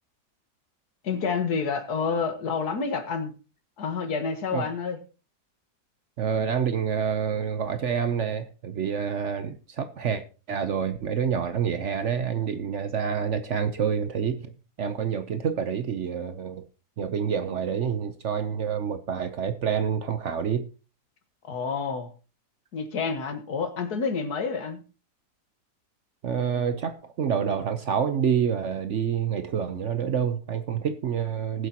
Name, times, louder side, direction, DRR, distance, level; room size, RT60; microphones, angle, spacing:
voice 1, 1.0-3.3 3.8-5.0 21.4-22.1 22.7-24.8, left 5 dB, 75° left, 1.9 m, -28 dB
voice 2, 6.2-14.5 14.8-16.6 17.0-20.7 26.2-31.7, right 7 dB, 55° right, 0.9 m, -27 dB
20.0 x 7.8 x 2.9 m
omnidirectional pair, 1.7 m